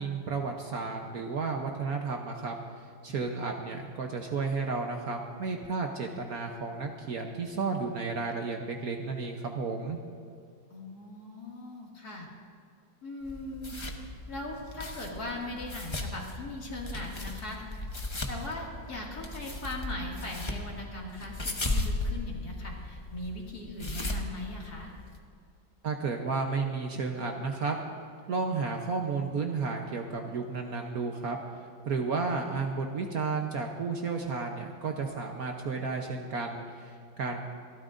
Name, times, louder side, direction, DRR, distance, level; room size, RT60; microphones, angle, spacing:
voice 1, 0.0-2.6 3.0-10.0 25.8-27.8 28.3-31.4 31.9-37.5, right 4 dB, 60° right, 2 dB, 1.2 m, -32 dB
voice 2, 10.7-12.3 13.0-13.8 14.3-17.9 18.3-24.9, left 1 dB, 55° left, -3 dB, 2.9 m, -39 dB
sound 1, 13.2-25.2, left 2 dB, 25° left, 0.6 m, -37 dB
27.0 x 12.5 x 2.6 m, 2.4 s
omnidirectional pair, 2.1 m